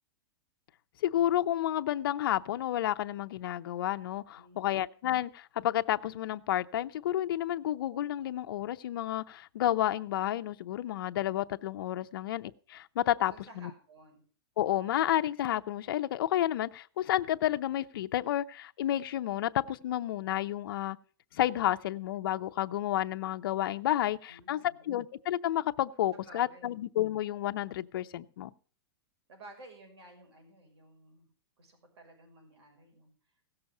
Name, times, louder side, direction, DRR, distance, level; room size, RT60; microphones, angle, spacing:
voice 1, 1.0-13.7 14.6-21.0 21.3-24.6 24.8-28.5, left 12 dB, 55° left, 0.6 m, -31 dB
voice 2, 4.4-4.8 12.1-12.2 13.3-14.2 24.3-25.0 26.1-26.8 29.3-31.3 31.6-33.1, right 2 dB, 80° right, 6.1 m, -54 dB
16.5 x 6.9 x 6.6 m
supercardioid pair, 170°, 14 cm